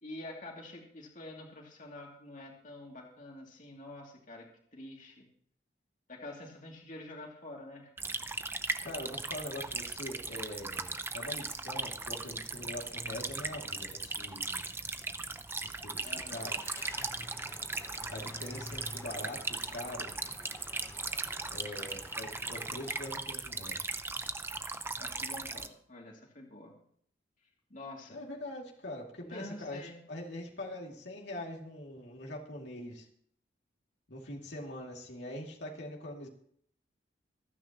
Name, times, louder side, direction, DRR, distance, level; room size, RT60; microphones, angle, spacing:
voice 1, 0.0-4.5 4.7-5.3 6.1-7.9 16.0-16.6 24.1-24.3 24.9-26.7 27.7-28.2 29.2-30.0, left 2 dB, 45° left, -1 dB, 2.7 m, -47 dB
sound 1, 8.0-25.7, right 3 dB, 15° right, 0.6 m, -38 dB
voice 2, 8.8-14.6 15.6-16.6 18.1-20.1 21.5-23.8 28.1-29.8 30.1-33.1 34.1-36.3, left 1 dB, 70° left, -2 dB, 2.6 m, -43 dB
Car / Engine starting, 16.3-23.2, left 2 dB, 15° left, 1.1 m, -50 dB
26.0 x 9.7 x 3.0 m, 0.63 s
head